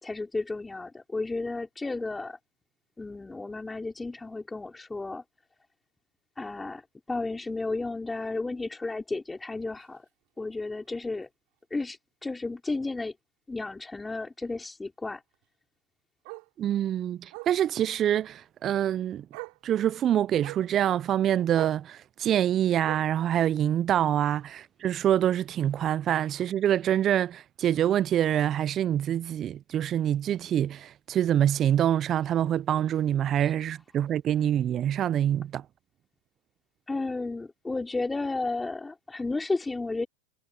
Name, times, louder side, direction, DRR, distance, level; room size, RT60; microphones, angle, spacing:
voice 1, 0.0-2.4 3.0-5.2 6.4-10.1 10.4-11.3 11.7-13.1 13.5-15.2 33.4-33.5 36.9-40.1, left 3 dB, 10° left, 3.4 m, -33 dB
Bark, 9.8-10.0 10.4-10.5 10.9-11.0 11.2-11.3 12.7-12.8 15.3-15.4 16.2-16.5 17.3-17.6 18.8-18.9 19.3-19.6 20.4-20.7 21.5-21.9 22.8-23.2 24.2-24.3, right 33 dB, 60° right, 7.7 m, -42 dB
voice 2, 16.6-19.3 19.6-35.7, right 10 dB, 35° right, 0.4 m, -26 dB
hypercardioid pair, 105°, 0 cm